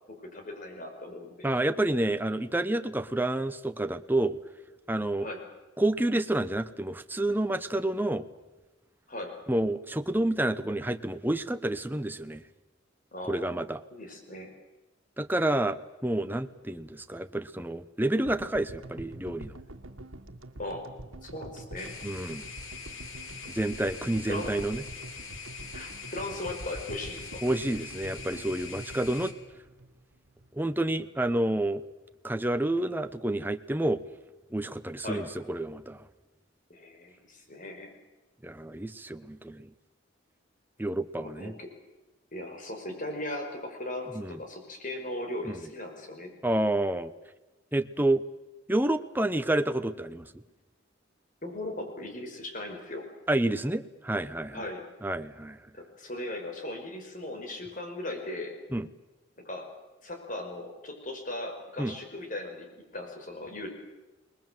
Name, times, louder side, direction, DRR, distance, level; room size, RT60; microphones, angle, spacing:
voice 1, 0.1-1.5 5.2-5.4 9.1-9.4 13.1-14.5 20.6-20.9 21.2-21.9 24.2-24.6 25.7-27.4 35.0-35.2 36.7-37.9 41.2-41.7 42.3-46.3 51.4-53.1 54.5-54.9 55.7-58.6 59.4-59.7 60.0-63.7, left 1 dB, 40° left, 4 dB, 5.3 m, -38 dB
voice 2, 1.4-4.4 4.9-5.3 5.8-8.3 9.5-12.4 13.2-13.8 15.2-19.5 22.0-22.5 23.5-24.8 27.4-29.3 30.5-31.8 32.2-34.0 34.5-36.1 38.4-39.7 40.8-41.5 44.1-44.4 45.5-45.6 46.4-47.1 47.7-48.2 48.7-50.4 53.3-54.6 55.0-55.6 58.7-58.9 61.8-62.0, right 1 dB, 10° right, 10 dB, 0.9 m, -29 dB
sound 1, 18.3-30.6, right 1 dB, 85° right, 1.8 m, -45 dB
sound 2, 21.8-29.3, left 5 dB, 85° left, 3.3 m, -43 dB
28.5 x 20.5 x 7.6 m, 1.1 s
head